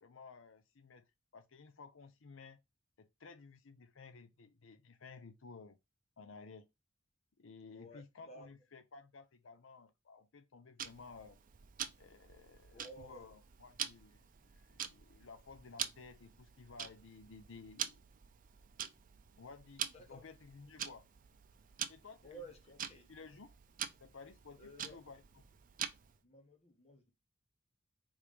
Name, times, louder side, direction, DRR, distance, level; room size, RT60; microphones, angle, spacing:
voice 1, 0.0-2.6 3.0-5.8 6.2-6.7 7.4-11.4 12.0-14.2 14.5-18.0 19.4-21.1 21.9-22.4 23.1-23.5 24.0-25.2, left 4 dB, 90° left, 0.7 m, -55 dB
voice 2, 7.7-8.5 12.7-13.3 19.9-20.3 22.2-23.1 24.6-25.0 26.2-27.1, right 1 dB, 35° left, 1.4 m, -54 dB
Tick-tock, 10.8-26.2, right 9 dB, 45° right, 0.6 m, -46 dB
5.0 x 3.6 x 5.1 m
head